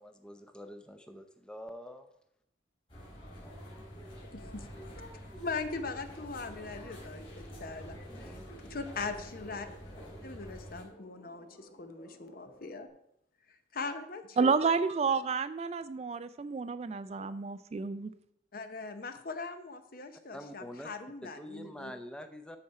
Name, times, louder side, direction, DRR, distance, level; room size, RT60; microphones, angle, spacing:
voice 1, 0.0-2.1 8.1-8.4 20.3-20.9 21.2-22.6, equal, 5° left, 7 dB, 0.6 m, -46 dB
sound 1, 2.9-10.8, equal, 30° left, 3.9 m, -47 dB
voice 2, 4.3-4.7 5.4-8.4 8.7-9.7 10.2-12.9 13.5-14.7 18.5-21.9, left 4 dB, 50° left, 8 dB, 0.8 m, -40 dB
sound 2, 6.1-12.9, left 1 dB, 70° left, 3.0 m, -56 dB
voice 3, 14.4-18.1, right 5 dB, 35° right, 13 dB, 0.3 m, -30 dB
13.0 x 4.3 x 4.7 m, 0.77 s
head